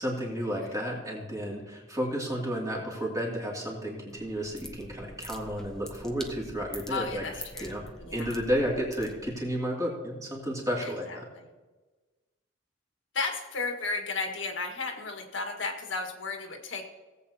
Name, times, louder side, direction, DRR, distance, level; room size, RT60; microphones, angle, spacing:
voice 1, 0.0-7.9 8.1-11.3, equal, 20° right, -3 dB, 2.6 m, -32 dB
sound 1, 4.1-9.5, left 1 dB, 5° left, 0.9 m, -45 dB
voice 2, 6.9-7.7 8.0-8.3 10.8-11.2 13.1-16.8, left 3 dB, 80° left, 3 dB, 1.7 m, -34 dB
18.0 x 8.1 x 2.9 m, 1.2 s
head